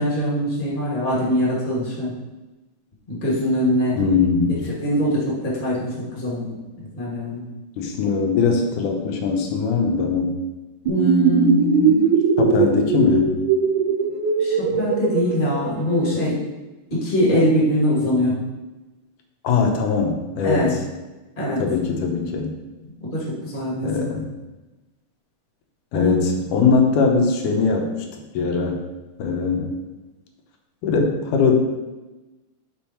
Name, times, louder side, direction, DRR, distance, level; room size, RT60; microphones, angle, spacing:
voice 1, 0.0-2.1 3.1-4.0 4.7-6.6 7.0-7.4 10.8-12.0 14.4-16.4 16.9-18.4 20.4-20.7 21.4-21.6 23.1-23.9 25.9-26.2, left 1 dB, 20° left, -6 dB, 1.8 m, -22 dB
voice 2, 4.0-4.7 7.8-10.3 12.4-13.3 19.4-20.8 21.6-22.5 23.8-24.3 25.9-28.8 29.2-29.8 30.8-31.6, left 5 dB, 75° left, 2 dB, 2.4 m, -21 dB
sound 1, 10.9-16.2, right 6 dB, 80° right, 1.9 m, -20 dB
7.1 x 5.0 x 4.5 m, 1.1 s
omnidirectional pair, 3.7 m